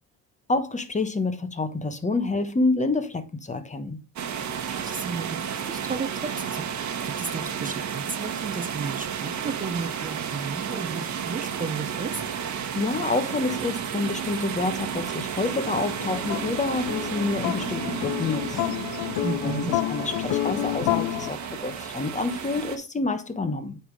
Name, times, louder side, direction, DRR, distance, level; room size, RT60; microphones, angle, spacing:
voice 1, 0.5-4.0 12.7-18.6 19.4-23.8, left 3 dB, 25° left, 1.2 m, -28 dB
sound 1, 4.2-22.8, right 8 dB, 70° right, 1.4 m, -32 dB
voice 2, 4.8-12.2 19.2-19.8, right 4 dB, 25° right, 0.8 m, -33 dB
sound 2, 15.6-21.3, left 15 dB, 80° left, 0.5 m, -29 dB
8.6 x 3.7 x 4.9 m
cardioid pair, 90°, 30 cm